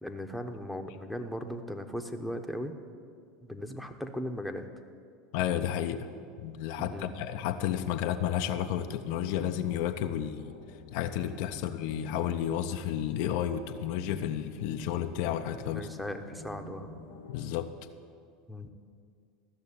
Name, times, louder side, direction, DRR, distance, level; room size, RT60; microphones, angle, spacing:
voice 1, 0.0-2.8 3.4-4.7 6.8-7.1 15.6-16.9 18.5-18.7, equal, ahead, 4 dB, 1.0 m, -37 dB
voice 2, 5.3-6.1 6.4-10.5 10.9-15.9 17.3-17.7, left 10 dB, 60° left, 7 dB, 0.6 m, -32 dB
sound 1, 8.4-17.4, left 1 dB, 85° left, 1.1 m, -47 dB
14.5 x 6.7 x 8.3 m, 2.3 s
hypercardioid pair, 80°, 0 cm